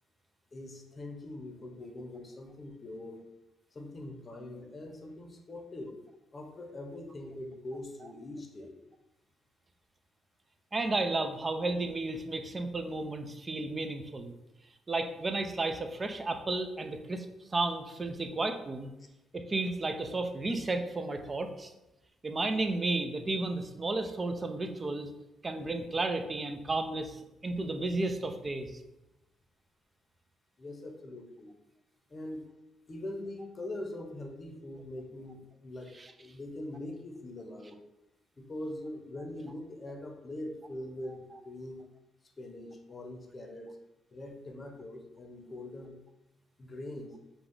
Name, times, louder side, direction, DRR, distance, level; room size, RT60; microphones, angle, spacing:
voice 1, 0.5-3.2 3.7-5.9 6.3-8.8 30.6-31.5 32.1-32.4 32.9-35.9 36.2-37.8 38.4-41.9 42.4-43.7 44.1-45.9 46.6-47.2, left 1 dB, 30° left, 4 dB, 0.8 m, -42 dB
voice 2, 10.7-14.3 14.9-17.3 17.5-18.9 19.3-21.7 22.2-25.1 25.4-28.8 36.0-36.1, right 2 dB, 30° right, 7 dB, 0.5 m, -33 dB
5.2 x 2.3 x 3.8 m, 0.96 s
cardioid pair, 90°, 0 cm